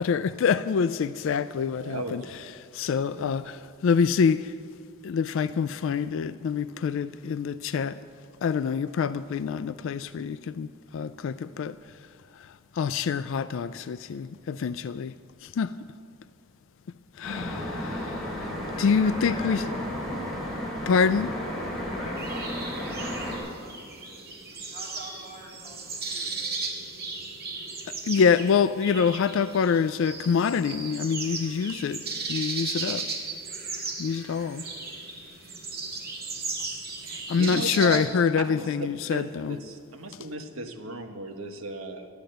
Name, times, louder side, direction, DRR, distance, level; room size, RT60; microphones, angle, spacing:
voice 1, 0.0-2.2 2.7-4.5 5.0-8.0 8.4-11.8 12.8-15.1 15.4-15.7 17.2-18.5 18.8-19.6 20.9-21.3 28.0-32.0 32.3-33.0 34.0-34.6 37.3-39.6, left 6 dB, 60° left, 0.3 m, -26 dB
voice 2, 1.7-2.3 3.1-3.4 37.0-38.1 38.3-42.1, right 2 dB, 75° right, 1.2 m, -36 dB
sound 1, 17.2-23.4, equal, ahead, 3.8 m, -33 dB
voice 3, 18.6-19.6 20.8-21.0 21.7-22.9 23.2-23.7 24.5-26.3, right 1 dB, 30° left, 2.9 m, -45 dB
sound 2, 22.2-38.0, right 4 dB, 45° right, 1.9 m, -36 dB
12.5 x 10.5 x 7.8 m
head